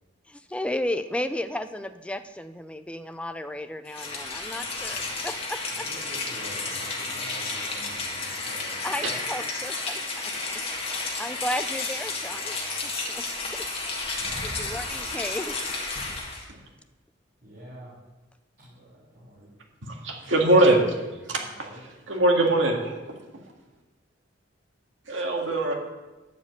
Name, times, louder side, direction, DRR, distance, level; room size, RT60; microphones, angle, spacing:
voice 1, 0.3-5.8 8.8-10.3 11.2-13.7 14.0-15.6, left 1 dB, 5° left, 10 dB, 0.5 m, -34 dB
Rain, 3.9-16.5, left 3 dB, 30° left, 1.7 m, -32 dB
voice 2, 5.8-9.0 14.2-14.7 17.4-18.0 18.6-19.5 21.2-21.8, right 1 dB, 55° right, -10 dB, 3.6 m, -47 dB
voice 3, 19.9-20.8 21.3-21.7 22.1-23.2 25.1-25.7, right 2 dB, 80° right, 1 dB, 2.0 m, -22 dB
10.5 x 5.0 x 8.2 m, 1.1 s
head